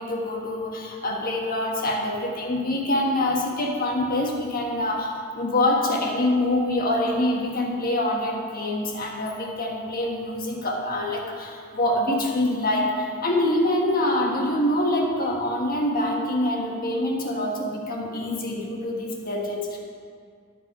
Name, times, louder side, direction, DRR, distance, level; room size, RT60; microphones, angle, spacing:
voice 1, 0.0-19.8, left 1 dB, 45° left, 0 dB, 1.4 m, -25 dB
11.5 x 7.2 x 4.7 m, 2.1 s
head